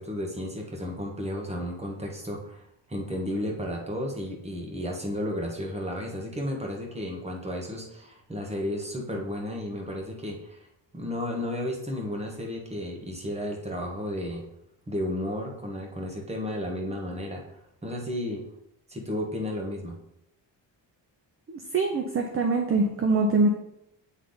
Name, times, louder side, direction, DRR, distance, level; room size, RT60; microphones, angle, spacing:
voice 1, 0.0-10.7 10.9-14.4 14.9-18.4 18.9-20.0, left 1 dB, 15° right, 0 dB, 1.3 m, -33 dB
voice 2, 21.5-23.5, right 3 dB, 30° right, 3 dB, 0.6 m, -24 dB
8.3 x 3.3 x 3.9 m, 0.80 s
cardioid pair, 120°, 45 cm